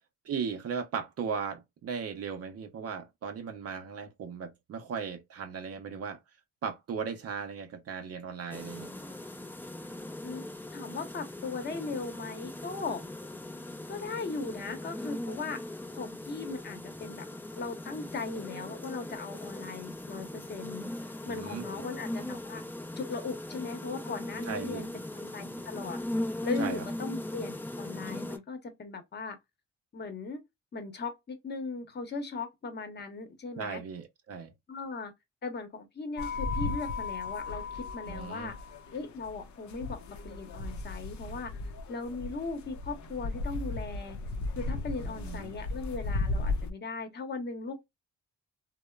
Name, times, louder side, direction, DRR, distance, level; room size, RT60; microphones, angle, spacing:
voice 1, 0.2-6.2 6.6-8.9 21.2-21.7 24.5-24.9 26.6-26.8 33.6-34.5 38.1-38.5 45.1-45.5, right 6 dB, 50° right, 0.6 m, -37 dB
sound 1, 8.5-28.4, left 1 dB, 5° left, 0.4 m, -39 dB
voice 2, 10.2-13.0 13.9-15.6 15.9-17.3 17.6-20.9 21.3-22.6 23.0-24.9 25.1-26.0 26.4-29.4 29.9-30.4 30.7-33.8 34.7-35.1 35.4-38.5 38.9-40.0 40.2-41.5 41.9-44.2 44.6-47.9, left 4 dB, 35° left, 0.8 m, -38 dB
sound 2, 36.2-46.7, left 3 dB, 70° left, 0.5 m, -36 dB
2.9 x 2.0 x 2.2 m
cardioid pair, 90°, 30 cm